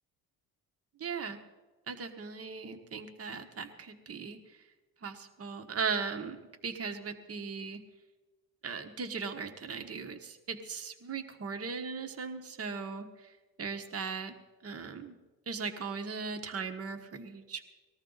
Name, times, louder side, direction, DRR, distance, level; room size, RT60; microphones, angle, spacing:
voice 1, 1.0-1.4 1.9-4.6 5.0-6.4 6.6-7.8 8.6-13.3 13.6-14.3 14.6-15.2 15.5-17.6, right 5 dB, 40° right, 6 dB, 1.3 m, -38 dB
19.5 x 13.5 x 4.0 m, 1.2 s
cardioid pair, 85°, 38 cm